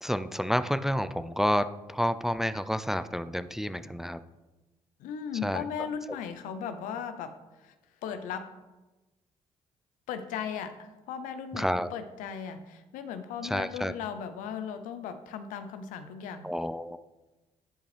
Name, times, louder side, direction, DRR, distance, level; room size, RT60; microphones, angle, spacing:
voice 1, 0.0-4.2 5.4-5.6 11.5-11.9 13.4-13.9 16.4-17.0, equal, 5° right, 12 dB, 0.4 m, -29 dB
voice 2, 5.0-7.7 8.0-8.6 10.1-16.5, left 7 dB, 85° left, 10 dB, 0.6 m, -37 dB
10.5 x 5.1 x 3.3 m, 1.1 s
supercardioid pair, 65°, 13 cm